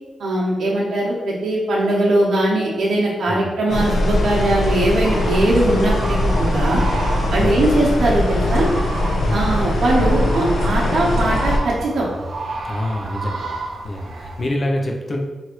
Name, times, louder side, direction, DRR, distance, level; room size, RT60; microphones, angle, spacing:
voice 1, 0.2-6.8 7.3-8.7 9.3-12.1, right 1 dB, 80° right, -5 dB, 1.0 m, -20 dB
sound 1, 3.7-11.6, left 1 dB, 80° left, 0.6 m, -21 dB
sound 2, 5.0-14.5, right 2 dB, 60° right, 0.5 m, -31 dB
voice 2, 12.6-13.6 13.8-15.2, left 1 dB, 45° left, 2 dB, 0.6 m, -26 dB
3.1 x 2.6 x 4.4 m, 1.2 s
cardioid pair, 95°, 0 cm